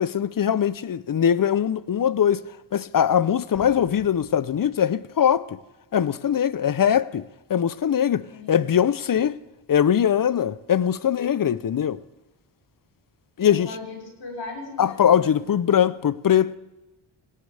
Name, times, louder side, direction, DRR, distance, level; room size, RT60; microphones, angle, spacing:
voice 1, 0.0-2.4 2.7-5.6 5.9-9.4 9.7-12.0 13.4-13.7 14.8-16.6, left 9 dB, 45° left, 0.7 m, -21 dB
Explosion, 3.5-5.2, left 4 dB, 85° left, 3.5 m, -50 dB
voice 2, 8.3-8.6 13.4-15.3, left 3 dB, 60° left, 5.9 m, -38 dB
20.5 x 17.0 x 3.4 m
cardioid pair, 50°, 49 cm